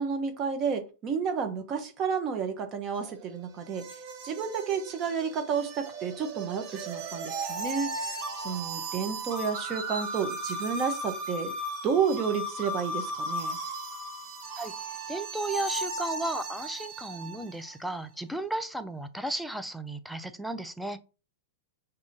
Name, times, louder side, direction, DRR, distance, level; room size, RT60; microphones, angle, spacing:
voice 1, 0.0-3.9 4.2-8.2 8.4-11.5 11.8-13.6, right 6 dB, 30° right, 0.7 m, -31 dB
sound 1, 2.9-17.6, right 2 dB, 50° right, 1.1 m, -36 dB
voice 2, 15.1-21.0, right 1 dB, ahead, 0.4 m, -34 dB
4.9 x 2.7 x 2.7 m
hypercardioid pair, 135°, 0 cm